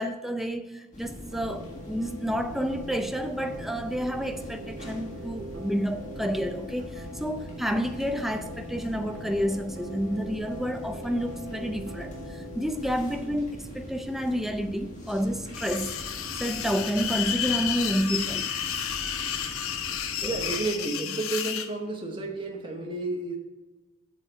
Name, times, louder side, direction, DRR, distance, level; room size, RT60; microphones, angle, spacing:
voice 1, 0.0-16.0 16.4-18.5 20.2-20.3, equal, ahead, 7 dB, 0.4 m, -30 dB
sound 1, 0.9-20.6, left 1 dB, 35° left, 1.7 m, -43 dB
sound 2, 1.3-18.0, right 1 dB, 80° right, 1.7 m, -44 dB
sound 3, 15.5-21.7, left 9 dB, 75° left, 0.7 m, -31 dB
voice 2, 20.2-23.4, right 2 dB, 25° right, 1 dB, 1.0 m, -31 dB
8.1 x 6.5 x 4.5 m, 1.2 s
head